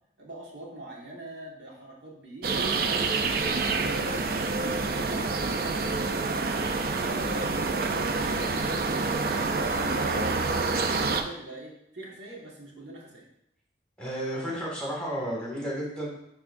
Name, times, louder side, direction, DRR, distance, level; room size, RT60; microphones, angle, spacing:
voice 1, 0.2-6.7 7.0-13.3, right 2 dB, 85° right, -4 dB, 1.7 m, -43 dB
sound 1, 2.4-11.2, right 3 dB, 55° right, 0.5 m, -27 dB
voice 2, 14.0-16.1, equal, 5° left, -5 dB, 1.9 m, -32 dB
10.5 x 3.6 x 2.6 m, 0.77 s
head